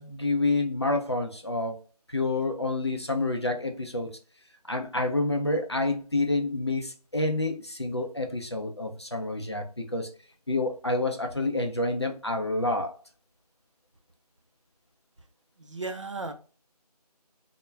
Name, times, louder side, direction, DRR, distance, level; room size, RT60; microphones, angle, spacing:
voice 1, 0.0-1.8 2.1-4.2 4.6-10.1 10.5-12.9, left 2 dB, 40° left, 0.4 m, -28 dB
voice 2, 15.6-16.3, right 3 dB, 50° right, 0.5 m, -35 dB
2.2 x 2.1 x 3.1 m
figure-of-eight pair, 165°, 21 cm